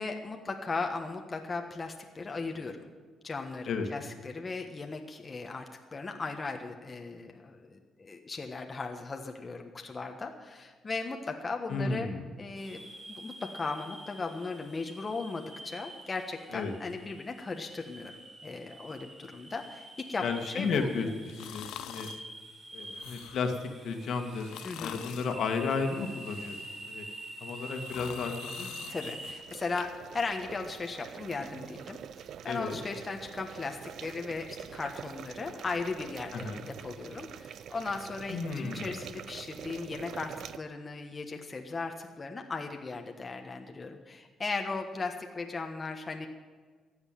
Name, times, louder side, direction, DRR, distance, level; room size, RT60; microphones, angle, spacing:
voice 1, 0.0-2.9 3.2-5.6 5.9-12.1 12.4-20.2 20.5-21.1 24.6-25.0 28.9-46.3, left 3 dB, 30° left, 3 dB, 1.4 m, -37 dB
voice 2, 11.7-12.3 16.5-16.7 20.2-21.1 21.4-22.1 22.7-24.5 24.8-27.1 27.4-28.8 32.5-32.8 36.3-36.7 38.3-39.0, left 4 dB, 70° left, 5 dB, 1.9 m, -33 dB
sound 1, 12.6-29.4, right 1 dB, 30° right, 2.9 m, -46 dB
sound 2, 21.3-22.3 22.8-23.6 24.3-25.4 25.9-26.9 27.4-29.8 30.2-30.3, left 11 dB, 85° left, 0.6 m, -45 dB
sound 3, 29.4-40.6, right 9 dB, 70° right, 0.5 m, -45 dB
14.5 x 8.0 x 9.1 m, 1.5 s
cardioid pair, 90°, 0 cm